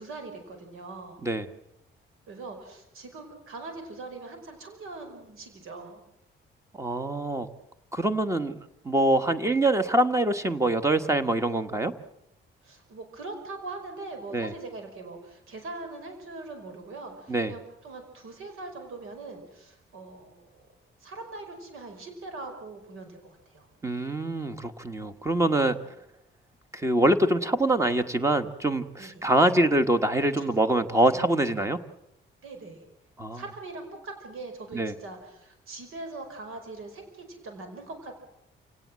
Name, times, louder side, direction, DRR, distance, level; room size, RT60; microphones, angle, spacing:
voice 1, 0.0-1.2 2.3-6.0 12.6-20.5 21.0-23.7 25.7-25.8 29.0-29.3 30.4-30.5 31.0-31.8 32.4-32.8 33.3-38.2, right 3 dB, 85° right, 6 dB, 5.1 m, -42 dB
voice 2, 6.7-7.5 7.9-8.5 8.8-11.9 14.3-14.5 17.3-17.5 23.8-25.8 26.7-31.8 33.2-33.4 34.7-34.9, right 1 dB, 15° right, 9 dB, 1.4 m, -24 dB
28.5 x 18.0 x 7.6 m, 0.83 s
cardioid pair, 165°, 21 cm